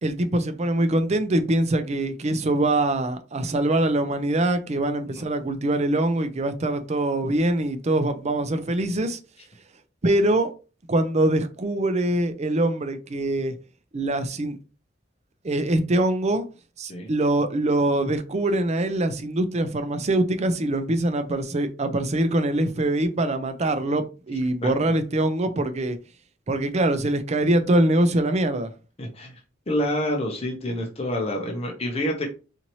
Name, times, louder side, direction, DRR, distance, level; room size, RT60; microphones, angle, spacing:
voice 1, 0.0-9.2 10.0-10.5 10.9-13.5 13.9-14.6 15.4-16.5 16.8-26.0 26.5-28.7, right 1 dB, 35° right, 0.5 m, -23 dB
voice 2, 29.0-29.3 29.7-32.3, left 1 dB, 30° left, 0.8 m, -27 dB
4.2 x 2.7 x 3.0 m
head